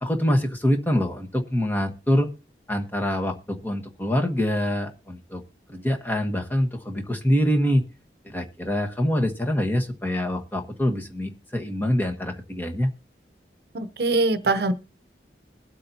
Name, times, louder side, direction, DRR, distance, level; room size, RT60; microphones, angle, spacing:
voice 1, 0.0-2.3 2.7-5.4 5.7-7.8 8.2-12.9, equal, 10° left, 1.3 m, -25 dB
voice 2, 13.7-14.7, right 3 dB, 65° right, 0.7 m, -22 dB
22.0 x 8.5 x 2.8 m
head